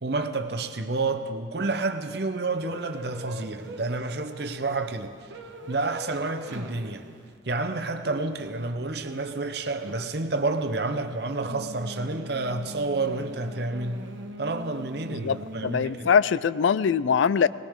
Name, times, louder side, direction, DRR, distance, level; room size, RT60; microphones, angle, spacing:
voice 1, 0.0-5.1 5.7-7.1 7.5-14.1 14.4-16.1, right 3 dB, 55° right, 0.8 m, -29 dB
sound 1, 2.5-16.0, right 1 dB, 80° right, 1.1 m, -43 dB
voice 2, 15.1-17.5, left 6 dB, 80° left, 0.4 m, -23 dB
20.0 x 19.5 x 3.7 m
head